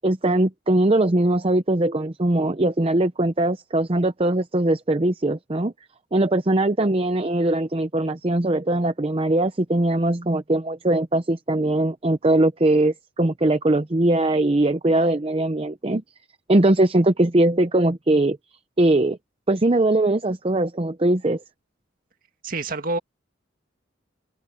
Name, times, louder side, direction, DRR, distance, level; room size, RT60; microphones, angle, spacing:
voice 1, 0.0-5.7 6.1-16.0 16.5-18.4 18.8-19.2 19.5-21.4, right 1 dB, 30° right, 0.7 m, -21 dB
voice 2, 22.4-23.0, right 2 dB, 45° right, 2.1 m, -27 dB
open air
head